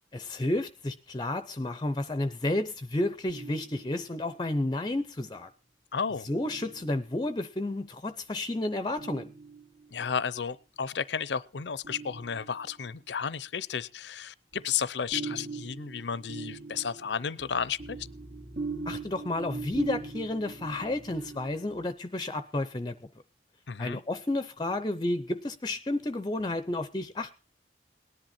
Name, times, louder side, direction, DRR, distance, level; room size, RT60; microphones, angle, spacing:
voice 1, 0.1-5.5 6.2-9.3 18.9-23.1 23.8-27.3, left 1 dB, 25° left, 0.6 m, -31 dB
sound 1, 3.3-4.4 6.3-7.3 9.0-10.1 11.8-12.9 14.5-21.9, right 4 dB, 65° right, 2.5 m, -41 dB
voice 2, 5.9-6.3 9.9-18.0 23.7-24.0, left 7 dB, 85° left, 0.6 m, -33 dB
18.5 x 10.5 x 4.3 m
head